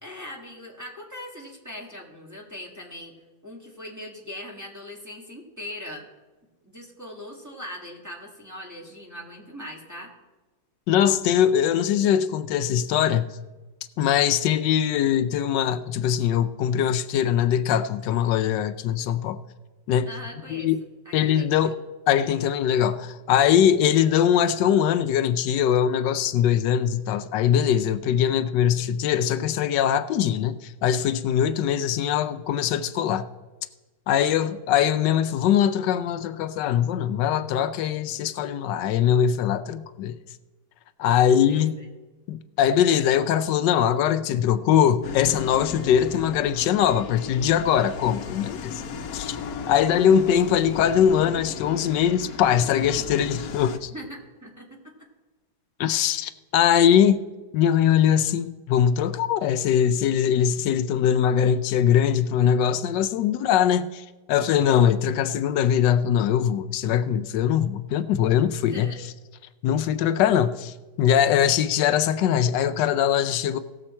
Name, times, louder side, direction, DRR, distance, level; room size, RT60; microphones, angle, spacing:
voice 1, 0.0-3.1 3.4-6.1 6.6-10.1 20.1-20.7 21.1-21.7 34.3-34.4 41.5-41.9 53.9-54.8 68.7-69.0, left 1 dB, 10° right, 1.7 m, -40 dB
voice 2, 10.9-13.3 14.0-19.4 19.9-20.1 20.5-20.8 21.1-21.8 22.1-33.3 34.1-40.2 41.0-41.8 42.3-48.8 49.1-49.4 49.7-53.9 55.8-57.3 57.5-68.9 69.6-73.6, left 9 dB, 85° left, 1.2 m, -22 dB
sound 1, 45.0-53.8, left 6 dB, 65° left, 1.1 m, -36 dB
17.5 x 7.1 x 4.3 m
omnidirectional pair, 1.9 m